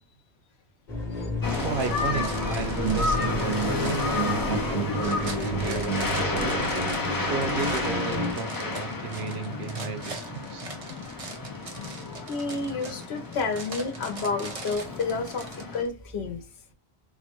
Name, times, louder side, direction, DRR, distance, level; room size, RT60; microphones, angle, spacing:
sound 1, 0.9-8.3, right 1 dB, 50° left, 1.1 m, -30 dB
sound 2, 1.4-15.8, left 3 dB, 25° left, 0.5 m, -31 dB
sound 3, 1.5-15.9, right 3 dB, 40° right, 0.7 m, -42 dB
voice 1, 1.5-6.7 7.2-10.7, right 5 dB, 80° right, 0.9 m, -34 dB
voice 2, 12.3-16.4, left 4 dB, 80° left, 1.0 m, -30 dB
4.2 x 2.1 x 2.9 m
omnidirectional pair, 1.1 m